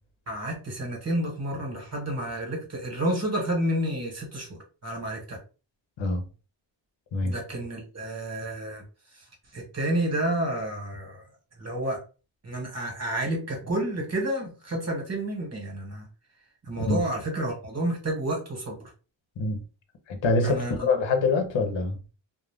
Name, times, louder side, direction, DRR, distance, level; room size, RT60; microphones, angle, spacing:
voice 1, 0.3-4.5 4.8-5.4 7.2-8.8 9.5-11.2 11.6-12.0 12.4-16.0 16.7-18.8 20.4-20.7, right 1 dB, 30° right, 1.3 m, -30 dB
voice 2, 20.1-22.0, left 3 dB, 65° left, 0.8 m, -25 dB
2.4 x 2.1 x 3.4 m
wide cardioid pair, 90°, 48 cm